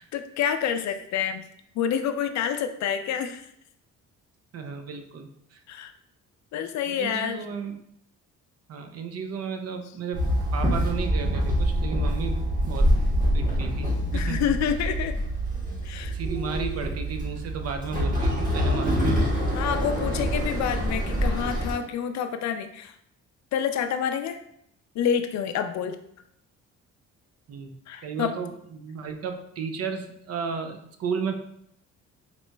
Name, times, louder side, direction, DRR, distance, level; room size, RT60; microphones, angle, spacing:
voice 1, 0.0-1.4 1.8-3.5 5.7-5.9 6.5-7.4 14.1-15.1 15.8-16.1 19.5-22.9 23.5-24.4 24.9-26.0 27.9-28.3, left 8 dB, 65° left, 8 dB, 0.4 m, -28 dB
voice 2, 4.5-5.6 6.9-7.8 8.7-13.1 13.3-14.4 16.1-19.3 27.5-27.7 28.0-31.4, right 5 dB, 55° right, 6 dB, 0.5 m, -34 dB
Walk footsteps / Chatter / Hiss, 10.1-21.7, equal, 25° right, 1.4 m, -26 dB
sound 1, 13.4-15.3, left 4 dB, 30° left, 0.7 m, -34 dB
4.1 x 2.9 x 2.2 m, 0.73 s
cardioid pair, 90°, 30 cm